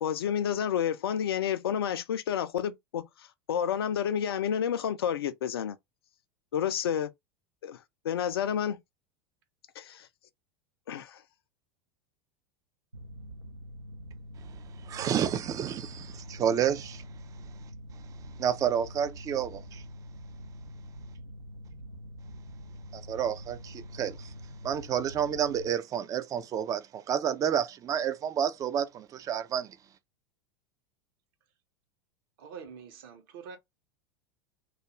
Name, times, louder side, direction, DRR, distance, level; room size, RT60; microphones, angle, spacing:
voice 1, 0.0-5.8 6.5-7.1 7.6-8.8 9.8-10.1 10.9-11.2, left 9 dB, 70° left, 0.4 m, -30 dB
Mechanical fan, 12.9-25.7, equal, 90° right, 0.5 m, -45 dB
voice 2, 14.9-17.0 18.4-19.6 23.1-24.1 24.6-29.7, right 8 dB, 25° right, 0.3 m, -29 dB
voice 3, 32.4-33.6, right 6 dB, 55° right, 0.7 m, -45 dB
2.3 x 2.3 x 2.9 m
figure-of-eight pair, 80°, 13 cm